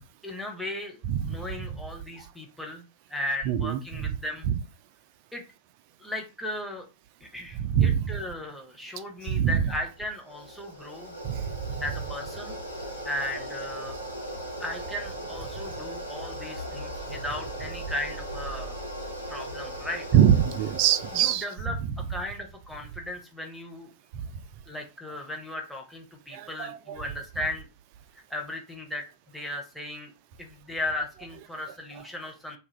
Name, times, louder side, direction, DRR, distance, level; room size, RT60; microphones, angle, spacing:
voice 1, 0.2-2.8 3.1-4.5 5.3-5.4 6.0-6.9 7.2-11.2 11.8-12.5 13.0-14.0 14.6-18.8 19.3-20.0 21.1-21.8 22.1-23.9 24.7-27.7 28.3-29.1 29.3-30.1 30.4-32.6, left 1 dB, 5° left, 0.8 m, -36 dB
voice 2, 1.1-1.7 3.5-4.1 4.5-4.6 7.6-8.2 9.3-9.6 11.2-11.5 20.1-21.4 24.1-24.2 26.3-27.0, right 9 dB, 45° right, 0.3 m, -24 dB
sound 1, 9.7-21.3, right 1 dB, 90° left, 0.7 m, -38 dB
2.4 x 2.3 x 3.1 m
figure-of-eight pair, 90°, 0 cm